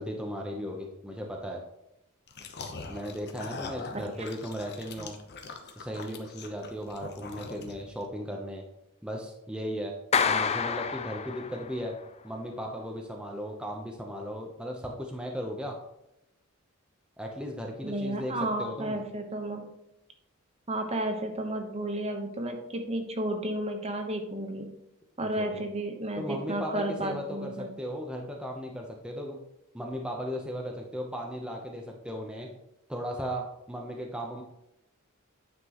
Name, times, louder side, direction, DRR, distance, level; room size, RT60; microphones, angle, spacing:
voice 1, 0.0-1.6 2.9-5.1 5.8-8.6 9.0-9.9 10.2-12.0 12.2-15.8 17.2-19.0 25.2-25.6 26.2-29.4 29.7-32.5 32.9-34.4, equal, 5° right, 0 dB, 0.8 m, -36 dB
sound 1, 2.3-8.0, left 4 dB, 50° left, 0.9 m, -43 dB
Clapping, 10.1-11.9, left 6 dB, 30° left, 0.4 m, -28 dB
voice 2, 17.8-19.6 20.7-24.7 25.2-27.7, right 1 dB, 30° right, 4 dB, 1.0 m, -32 dB
9.5 x 5.9 x 3.0 m, 0.84 s
head